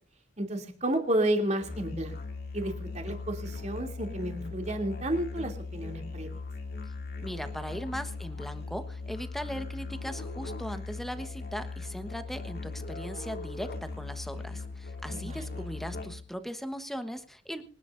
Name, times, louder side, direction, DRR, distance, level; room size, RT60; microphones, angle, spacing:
voice 1, 0.4-2.2 2.5-6.3 15.1-15.7, right 1 dB, 35° right, 4 dB, 2.8 m, -31 dB
Musical instrument, 1.6-16.4, left 3 dB, 55° left, 2.3 m, -39 dB
voice 2, 7.2-17.6, equal, ahead, 8 dB, 1.1 m, -38 dB
26.0 x 10.5 x 2.6 m, 0.42 s
head